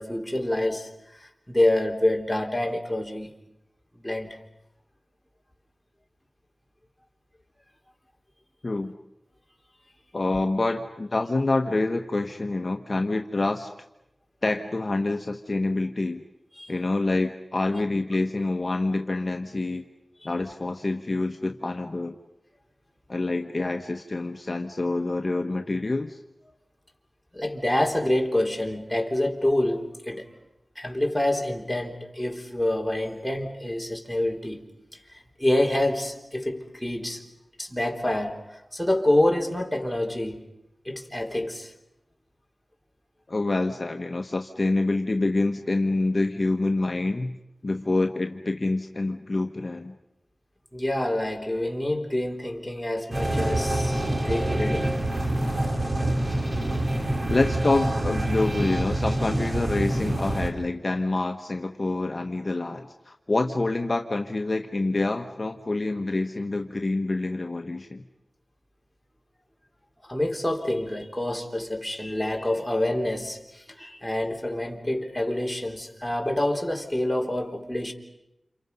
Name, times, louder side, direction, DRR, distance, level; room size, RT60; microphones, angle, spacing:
voice 1, 0.0-3.3 4.0-4.4 16.6-16.7 20.2-20.3 27.3-30.3 30.8-34.6 35.1-37.2 37.6-40.4 40.9-41.7 50.7-55.0 70.0-77.9, left 1 dB, 5° left, 3.6 m, -27 dB
voice 2, 10.1-13.7 14.4-16.2 16.7-19.8 20.2-22.2 23.1-26.2 43.3-47.3 47.6-49.9 57.3-68.0, left 2 dB, 45° left, 1.2 m, -27 dB
sound 1, 53.1-60.5, right 1 dB, 45° right, 3.7 m, -26 dB
30.0 x 28.0 x 5.5 m
wide cardioid pair, 60°, 0 cm